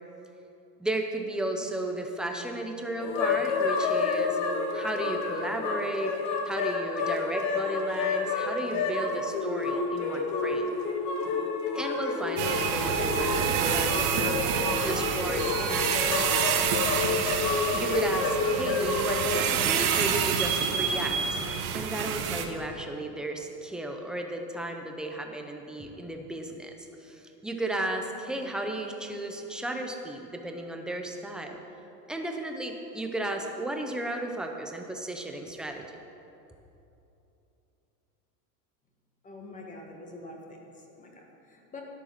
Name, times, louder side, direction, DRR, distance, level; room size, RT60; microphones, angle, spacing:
voice 1, 0.8-4.4 4.7-6.1 6.4-10.7 11.7-16.3 17.7-21.4 21.7-26.7 27.0-31.6 32.1-35.9, right 1 dB, ahead, 3 dB, 0.6 m, -34 dB
sound 1, 3.0-19.4, left 4 dB, 35° left, 1.5 m, -29 dB
sound 2, 12.4-22.5, right 8 dB, 60° right, 1.5 m, -28 dB
voice 2, 39.2-41.8, left 2 dB, 15° left, 1 dB, 1.6 m, -46 dB
12.5 x 10.0 x 5.9 m, 2.9 s
supercardioid pair, 150°, 46 cm